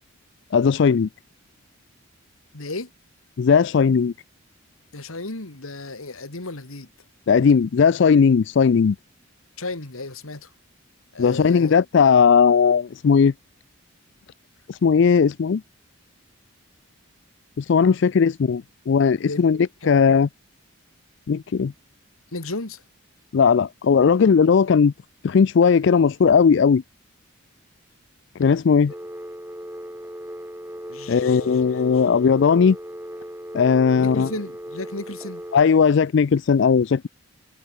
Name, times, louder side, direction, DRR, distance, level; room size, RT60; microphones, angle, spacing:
voice 1, 0.5-1.1 3.4-4.1 7.3-9.0 11.2-13.3 14.7-15.6 17.6-19.6 19.9-20.3 21.3-21.7 23.3-24.9 25.2-26.8 28.4-28.9 31.1-32.8 33.5-34.3 35.5-37.1, left 6 dB, 55° left, 0.4 m, -17 dB
voice 2, 2.5-2.9 4.9-6.9 9.6-10.5 11.1-11.8 19.2-19.4 19.8-19.9 22.3-22.8 30.9-32.4 34.0-35.4, left 2 dB, 80° left, 2.4 m, -34 dB
Telephone, 28.9-35.6, equal, 10° right, 2.5 m, -37 dB
head